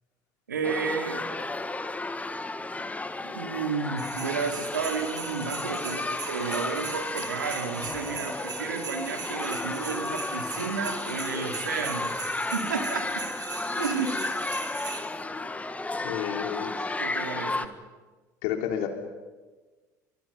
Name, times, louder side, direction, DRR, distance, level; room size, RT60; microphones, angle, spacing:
voice 1, 0.5-1.3 3.2-12.1 12.5-13.3 13.8-14.3 17.0-17.7, right 5 dB, 90° right, 4 dB, 2.9 m, -32 dB
sound 1, 0.6-17.7, left 2 dB, 15° left, 1.7 m, -33 dB
sound 2, 4.0-15.0, right 7 dB, 45° right, 4.8 m, -40 dB
voice 2, 16.0-16.7 18.4-18.9, left 10 dB, 70° left, 3 dB, 3.7 m, -31 dB
30.0 x 24.5 x 5.5 m, 1.3 s
hypercardioid pair, 65°, 10 cm